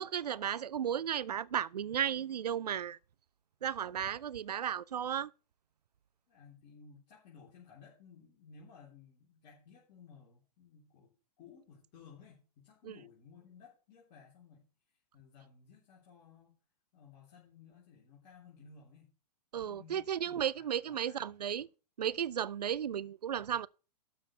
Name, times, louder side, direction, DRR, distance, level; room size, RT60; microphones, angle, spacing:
voice 1, 0.0-3.0 3.6-5.3 12.8-13.0 19.5-21.7 22.0-23.7, right 9 dB, 70° right, 0.4 m, -34 dB
voice 2, 3.8-4.1 6.3-11.1 11.4-14.6 15.1-16.5 16.9-19.1 19.5-21.4, left 6 dB, 35° left, 3.6 m, -57 dB
12.5 x 5.1 x 5.8 m
figure-of-eight pair, 105°, 21 cm